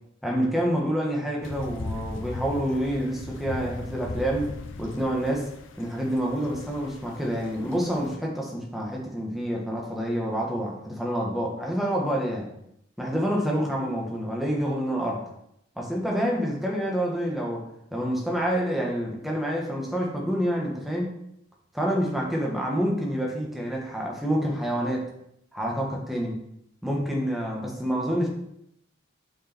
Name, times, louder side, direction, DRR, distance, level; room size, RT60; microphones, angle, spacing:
voice 1, 0.2-5.5 5.8-12.5 13.0-15.2 15.8-17.6 17.9-21.1 21.7-25.1 25.5-26.4 26.8-28.3, equal, ahead, -2 dB, 1.7 m, -27 dB
sound 1, 1.4-8.2, left 2 dB, 90° left, 0.8 m, -38 dB
8.5 x 5.2 x 4.6 m, 0.75 s
head